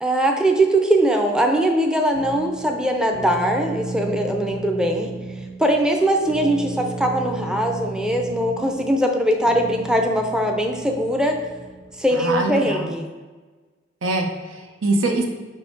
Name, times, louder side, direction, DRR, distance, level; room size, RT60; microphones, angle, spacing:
voice 1, 0.0-5.1 5.6-11.4 12.0-13.1, right 1 dB, 5° right, 2 dB, 0.5 m, -21 dB
sound 1, 2.1-12.0, right 2 dB, 60° right, 1.6 m, -34 dB
voice 2, 12.1-12.9 14.0-15.3, right 2 dB, 80° right, 3 dB, 0.8 m, -23 dB
5.5 x 5.0 x 3.9 m, 1.3 s
head